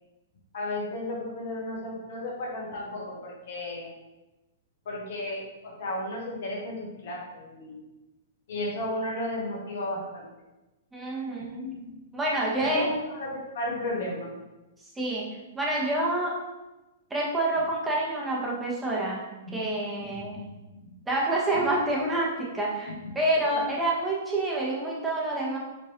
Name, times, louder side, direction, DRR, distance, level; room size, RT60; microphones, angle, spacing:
voice 1, 0.5-3.9 4.8-7.8 8.5-10.2 11.4-12.0 12.6-14.3 19.5-19.7 20.0-20.5 20.8-20.9 21.5-21.6 22.9-23.1, left 1 dB, 60° left, -2 dB, 1.2 m, -34 dB
voice 2, 10.9-11.7 12.1-12.9 15.0-15.2 15.5-16.3 17.1-19.2 19.5-20.4 21.1-25.6, right 1 dB, 10° right, -4 dB, 1.1 m, -27 dB
4.8 x 3.1 x 2.9 m, 1.0 s
hypercardioid pair, 115°, 0 cm